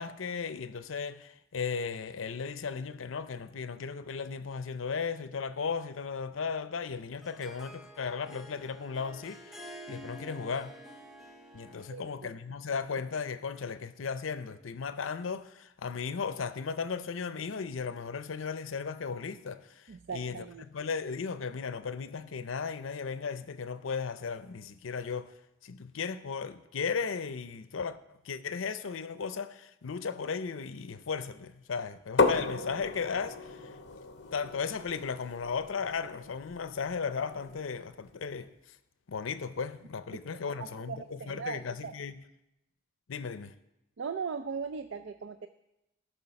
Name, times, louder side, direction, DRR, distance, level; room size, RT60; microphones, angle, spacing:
voice 1, 0.0-10.7 11.5-19.8 20.1-20.4 20.7-25.3 25.6-28.0 28.2-33.7 34.3-38.5 39.1-42.1 43.1-43.5, left 5 dB, 85° left, 0.6 m, -36 dB
Harp, 6.8-12.1, equal, ahead, 0.8 m, -49 dB
voice 2, 11.9-12.3 12.7-12.8 19.9-20.6 40.6-41.9 44.0-45.5, right 5 dB, 65° right, 0.4 m, -39 dB
sound 1, 32.2-37.8, left 3 dB, 60° left, 0.8 m, -34 dB
13.5 x 5.6 x 5.8 m
head